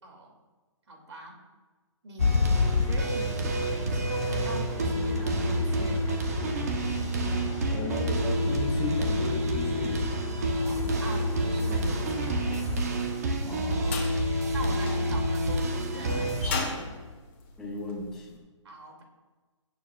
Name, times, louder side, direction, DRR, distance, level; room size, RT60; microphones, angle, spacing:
voice 1, 0.0-0.3 0.9-1.4 2.0-2.3 2.7-6.1 10.5-12.5 14.5-17.0 18.6-19.0, right 2 dB, 60° right, 1 dB, 2.6 m, -41 dB
sound 1, 2.2-12.8, left 5 dB, 90° left, 0.5 m, -33 dB
sound 2, 2.2-16.5, right 1 dB, 30° right, 1.0 m, -28 dB
voice 2, 7.6-10.1 13.4-14.0 17.6-18.4, left 2 dB, 5° left, -3 dB, 0.7 m, -35 dB
sound 3, 13.1-18.2, left 4 dB, 25° left, 1.4 m, -37 dB
16.0 x 7.0 x 2.4 m, 1.3 s
hypercardioid pair, 175°, 17 cm